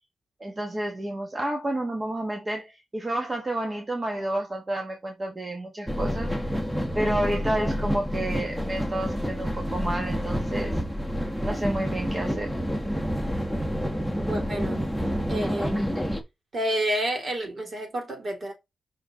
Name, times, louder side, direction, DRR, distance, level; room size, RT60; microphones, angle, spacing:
voice 1, 0.4-6.3 6.9-10.8 11.4-12.6, right 1 dB, 30° right, 1.4 m, -30 dB
sound 1, 5.9-16.2, equal, 5° right, 1.4 m, -28 dB
voice 2, 14.2-14.9 15.3-15.9 16.5-18.5, right 1 dB, 50° right, 3.5 m, -29 dB
5.8 x 4.7 x 3.8 m
wide cardioid pair, 120°, 0 cm